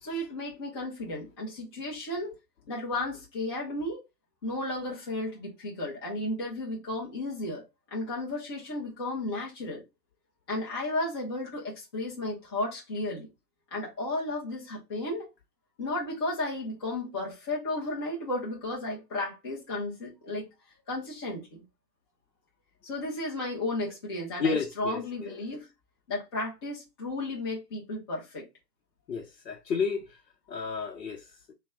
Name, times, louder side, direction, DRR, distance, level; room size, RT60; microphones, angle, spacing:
voice 1, 0.0-2.3 2.7-4.0 4.4-7.6 7.9-9.8 10.5-13.3 13.7-15.3 15.8-20.5 20.9-21.6 22.8-25.7 26.1-28.4, left 2 dB, 15° left, 0.5 m, -33 dB
voice 2, 24.4-25.3 29.1-30.0 30.5-31.5, left 5 dB, 85° left, 0.8 m, -31 dB
3.5 x 2.2 x 3.5 m
hypercardioid pair, 145°, 49 cm